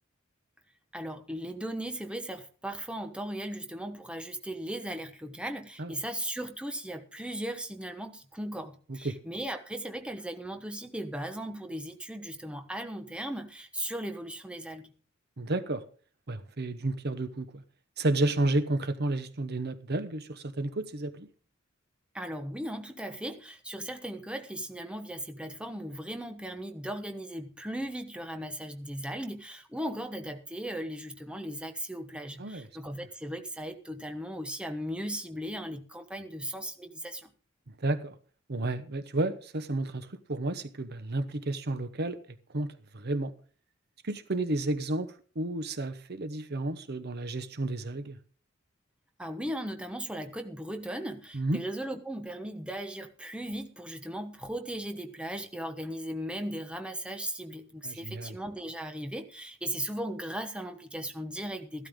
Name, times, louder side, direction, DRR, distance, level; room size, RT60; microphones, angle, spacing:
voice 1, 0.9-14.9 22.1-37.3 49.2-61.9, right 1 dB, 5° right, 1.1 m, -37 dB
voice 2, 15.4-15.8 16.3-17.6 18.0-21.3 32.4-32.7 37.8-38.1 38.5-42.2 42.5-43.3 44.0-45.1 45.4-48.2 51.3-51.6 57.8-58.3, right 2 dB, 55° right, 1.0 m, -31 dB
14.5 x 12.5 x 3.7 m
head